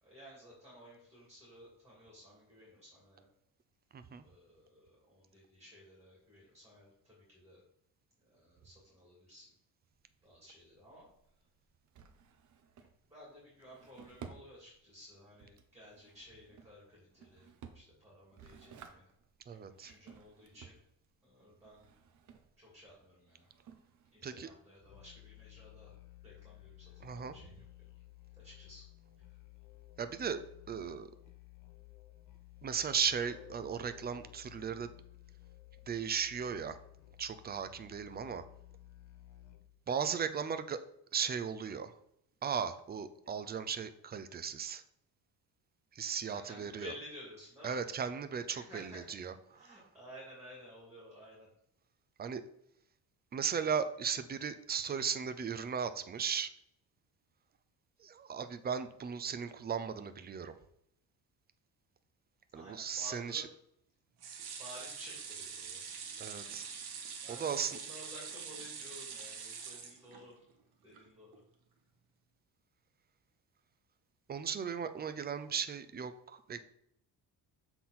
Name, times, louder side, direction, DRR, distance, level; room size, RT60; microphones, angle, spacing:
voice 1, 0.0-3.3 4.2-7.6 8.2-9.5 10.2-11.1 13.1-19.1 19.5-20.8 21.2-21.9 22.6-23.5 24.1-25.9 26.2-27.9 28.4-28.8 29.3-29.4 46.3-47.8 48.5-49.1 49.5-51.5 62.5-63.5 64.6-65.8 67.2-70.4 70.8-71.4, equal, 5° right, -5 dB, 2.6 m, -54 dB
voice 2, 3.9-4.2 19.5-19.9 24.2-24.5 27.0-27.3 30.0-31.1 32.6-34.9 35.9-36.8 37.2-38.4 39.9-40.8 41.1-41.9 42.4-44.8 45.9-46.9 47.6-49.8 52.2-52.4 53.3-56.5 58.0-60.5 62.5-63.4 66.2-66.7 67.4-67.8 74.3-76.6, right 7 dB, 25° right, 10 dB, 0.4 m, -36 dB
Drawer open or close, 9.8-25.0, right 6 dB, 50° right, 0.8 m, -57 dB
Musical instrument, 24.8-39.8, left 15 dB, 50° left, 0.8 m, -56 dB
sound 1, 64.2-70.5 70.9-71.0 71.3-71.4, right 6 dB, 70° right, 1.4 m, -45 dB
7.5 x 3.9 x 4.3 m, 0.73 s
cardioid pair, 130°, 39 cm